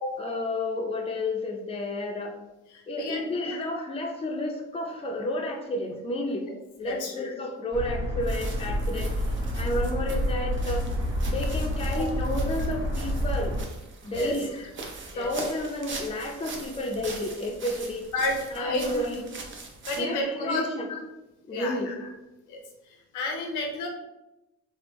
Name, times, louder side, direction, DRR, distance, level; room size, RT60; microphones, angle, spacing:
voice 1, 0.2-2.3 2.9-6.5 6.8-9.1 9.6-10.9 11.3-13.6 14.0-14.7 15.2-18.0 18.5-19.3 20.0-21.0 21.5-22.1, left 1 dB, 20° left, 2 dB, 0.5 m, -31 dB
voice 2, 2.7-3.2 3.5-3.6 6.4-6.5 6.8-7.3 12.0-12.1 14.1-14.3 15.1-15.3 18.1-18.9 19.9-20.6 21.5-21.9 22.5-22.6 23.1-23.9, left 2 dB, 90° left, 2 dB, 0.7 m, -31 dB
sound 1, 7.7-13.6, equal, 15° right, 1.2 m, -28 dB
sound 2, 8.2-20.0, right 3 dB, 40° right, 0.6 m, -42 dB
3.3 x 2.1 x 3.0 m, 0.94 s
cardioid pair, 90°, 30 cm